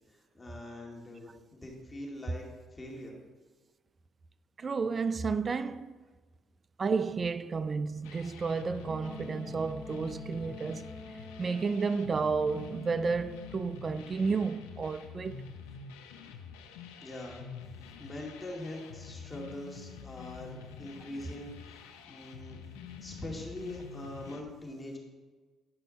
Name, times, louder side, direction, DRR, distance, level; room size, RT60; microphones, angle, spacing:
voice 1, 0.3-2.4 2.7-3.1 17.0-17.4 17.8-21.8 22.1-22.6 23.0-25.0, left 1 dB, 25° left, 2.5 m, -43 dB
voice 2, 4.6-5.9 6.8-10.9 11.4-15.4, right 4 dB, 40° right, 0.5 m, -31 dB
sound 1, 8.0-24.4, left 6 dB, 85° left, 0.7 m, -47 dB
Wind instrument woodwind instrument, 8.9-13.7, left 1 dB, 5° left, 0.9 m, -47 dB
11.0 x 5.5 x 4.2 m
hypercardioid pair, 60°, 0 cm